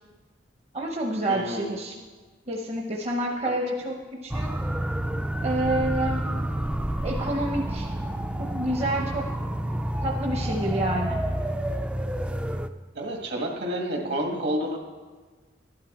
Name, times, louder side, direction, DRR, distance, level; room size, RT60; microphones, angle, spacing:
voice 1, 0.7-1.9 2.5-3.9 4.2-4.5 5.4-6.2 7.0-7.9 8.4-9.2 10.0-11.2, right 1 dB, 35° right, 0 dB, 0.8 m, -28 dB
voice 2, 1.3-1.8 12.9-14.8, right 1 dB, 65° right, 2 dB, 1.8 m, -29 dB
sound 1, 4.3-12.7, right 1 dB, 5° right, 0.3 m, -29 dB
12.5 x 11.5 x 4.2 m, 1.4 s
head